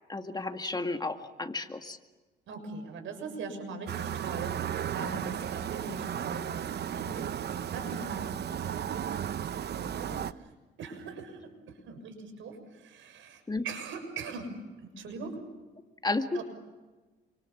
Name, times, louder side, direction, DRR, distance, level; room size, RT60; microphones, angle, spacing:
voice 1, 0.1-2.0 13.5-13.6 16.0-16.4, left 2 dB, 20° left, 6 dB, 2.0 m, -32 dB
voice 2, 2.5-9.0 9.7-10.5 10.8-11.4 11.9-14.5 14.8-15.4 16.3-16.4, right 4 dB, 80° right, 7 dB, 6.8 m, -41 dB
sound 1, 3.9-10.3, right 9 dB, 55° right, 0.9 m, -34 dB
28.5 x 26.0 x 7.3 m, 1.2 s
cardioid pair, 90°, 20 cm